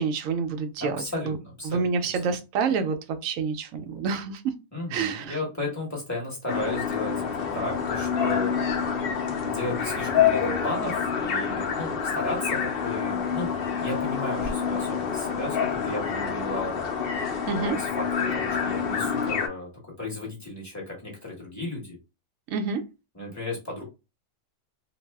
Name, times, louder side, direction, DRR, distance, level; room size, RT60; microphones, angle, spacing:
voice 1, 0.0-1.4 1.6-4.4 4.9-5.4 17.5-17.8 22.5-22.8, right 5 dB, 70° right, 0.9 m, -28 dB
voice 2, 0.8-1.9 2.2-2.3 4.7-8.5 9.4-13.5 13.8-16.8 17.5-22.0 23.1-23.8, left 2 dB, 15° left, 0.9 m, -34 dB
sound 1, 6.5-19.5, left 7 dB, 80° left, 0.5 m, -27 dB
2.6 x 2.0 x 3.3 m
omnidirectional pair, 1.7 m